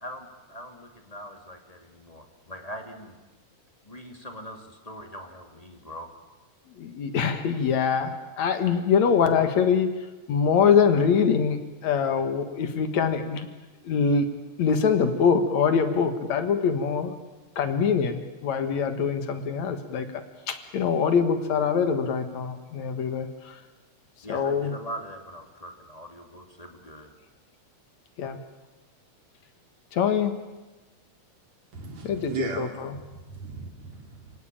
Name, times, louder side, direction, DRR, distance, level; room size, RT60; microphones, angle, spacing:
voice 1, 0.0-3.2 3.8-6.1 24.2-27.1, equal, 15° left, 3 dB, 2.2 m, -41 dB
voice 2, 6.8-9.9 10.3-13.5 13.9-14.3 14.6-17.1 17.6-20.1 20.5-23.3 24.3-24.7 28.2-28.4 29.9-30.3 32.0-32.3 32.6-32.7, left 6 dB, 70° left, 8 dB, 2.8 m, -23 dB
voice 3, 31.7-34.4, right 5 dB, 60° right, 3 dB, 4.1 m, -37 dB
29.0 x 18.0 x 9.0 m, 1.2 s
omnidirectional pair, 3.4 m